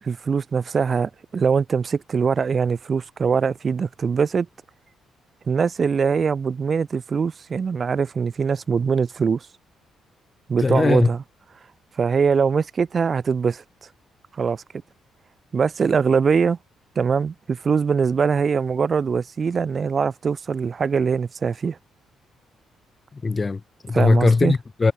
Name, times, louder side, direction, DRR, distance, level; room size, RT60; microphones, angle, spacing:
voice 1, 0.0-4.5 5.5-9.5 10.5-11.2 12.0-13.6 14.4-14.6 15.5-16.6 17.0-21.8 23.9-24.5, right 6 dB, 40° right, 4.4 m, -22 dB
voice 2, 10.6-11.1 23.2-24.9, left 4 dB, 30° left, 1.2 m, -20 dB
cardioid pair, 90°, 0 cm